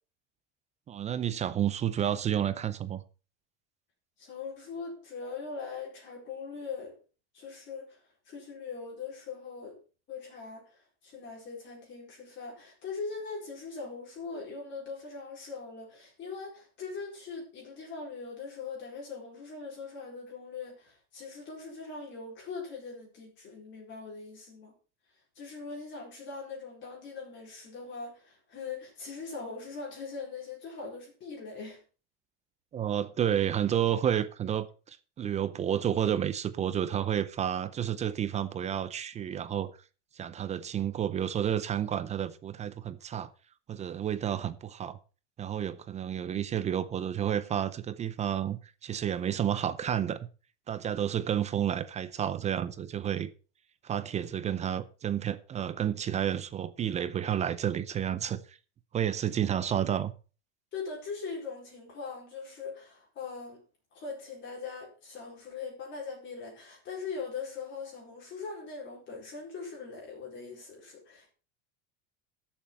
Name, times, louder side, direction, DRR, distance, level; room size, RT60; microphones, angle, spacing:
voice 1, 0.9-3.0 32.7-39.7 40.2-43.3 43.7-45.0 45.4-50.2 50.7-53.3 53.8-58.6 58.9-60.1, right 9 dB, 20° right, 0.5 m, -30 dB
voice 2, 4.2-7.0 7.3-9.8 10.1-24.7 25.3-31.8 59.2-59.3 60.7-63.6 63.9-71.3, left 4 dB, 35° left, 4.4 m, -41 dB
12.5 x 7.3 x 5.7 m
supercardioid pair, 155°, 36 cm